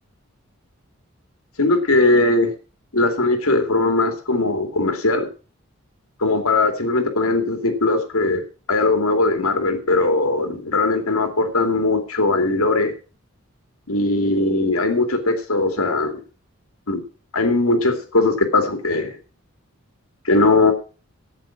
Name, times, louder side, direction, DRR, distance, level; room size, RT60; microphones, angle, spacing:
voice 1, 1.6-2.5 2.9-5.3 6.2-8.4 8.7-12.9 13.9-16.2 16.9-17.0 17.3-19.2 20.2-20.7, left 2 dB, 80° left, 6 dB, 2.6 m, -19 dB
13.5 x 8.9 x 6.1 m, 0.35 s
head